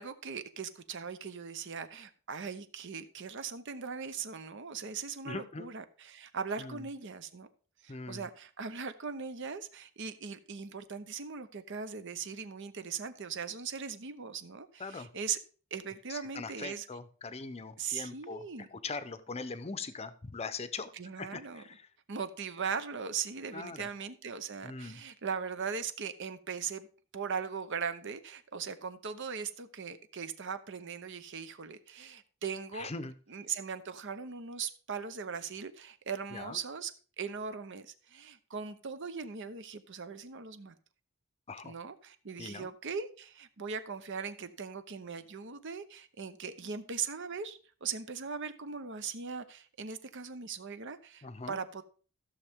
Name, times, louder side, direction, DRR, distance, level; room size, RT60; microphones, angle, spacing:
voice 1, 0.0-7.5 7.8-15.4 15.7-16.9 17.8-18.7 20.9-21.6 22.1-26.9 27.1-32.9 33.3-36.9 37.2-40.7 41.6-51.8, right 6 dB, 60° right, 11 dB, 0.8 m, -39 dB
voice 2, 5.2-5.7 6.6-6.9 7.9-8.3 14.8-15.1 16.1-20.9 21.2-21.9 23.5-23.9 24.6-25.0 32.7-33.1 36.3-36.6 41.5-41.7 42.4-42.7 51.2-51.6, left 4 dB, 30° left, 12 dB, 0.7 m, -41 dB
14.5 x 6.5 x 3.6 m, 0.40 s
head